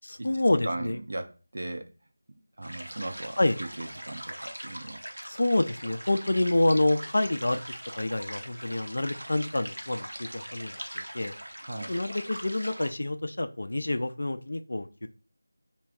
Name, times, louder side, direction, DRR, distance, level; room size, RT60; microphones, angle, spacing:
voice 1, 0.0-1.0 3.4-3.6 5.3-7.6 8.0-11.3 11.9-15.1, left 1 dB, 55° left, 0.3 m, -27 dB
voice 2, 0.6-1.9 2.6-5.0 11.6-11.9, right 2 dB, 50° right, 0.4 m, -37 dB
sound 1, 2.6-12.9, equal, 80° right, 0.7 m, -41 dB
3.2 x 2.3 x 3.5 m
figure-of-eight pair, 165°, 0 cm